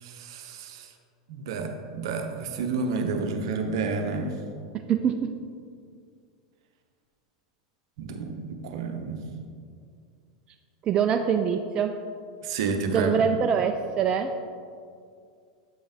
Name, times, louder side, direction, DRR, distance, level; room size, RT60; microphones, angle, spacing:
voice 1, 0.0-0.9 1.3-4.3 8.0-9.2 12.4-13.3, right 4 dB, 65° right, 5 dB, 0.8 m, -30 dB
voice 2, 4.7-5.4 10.8-12.0 12.8-14.5, right 7 dB, 35° right, 6 dB, 0.3 m, -25 dB
7.7 x 5.3 x 3.5 m, 2.3 s
hypercardioid pair, 95°, 3 cm